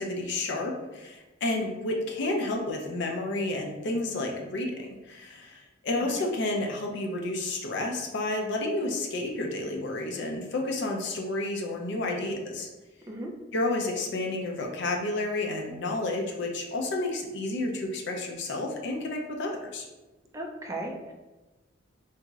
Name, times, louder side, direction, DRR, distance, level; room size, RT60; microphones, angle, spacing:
voice 1, 0.0-12.7 13.5-19.9, left 2 dB, 65° left, 1 dB, 0.5 m, -31 dB
voice 2, 20.3-21.1, right 1 dB, 15° right, 1 dB, 0.4 m, -36 dB
2.9 x 2.8 x 2.3 m, 1.1 s
head